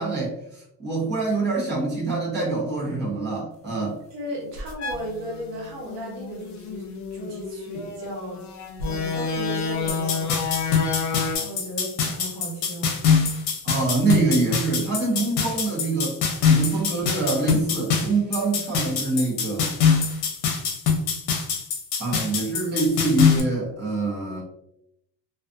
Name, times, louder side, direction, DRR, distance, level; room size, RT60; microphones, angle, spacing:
voice 1, 0.0-4.0 13.6-16.1 16.4-19.7 22.0-24.4, right 3 dB, 25° right, -4 dB, 0.8 m, -25 dB
voice 2, 4.1-8.4 8.8-10.4 11.4-13.0, right 1 dB, 75° right, -1 dB, 1.2 m, -35 dB
sound 1, 4.6-11.4, left 5 dB, 45° left, 0.5 m, -30 dB
sound 2, 9.9-23.4, left 6 dB, 75° left, 0.7 m, -24 dB
2.4 x 2.3 x 2.5 m, 0.80 s
cardioid pair, 165°, 41 cm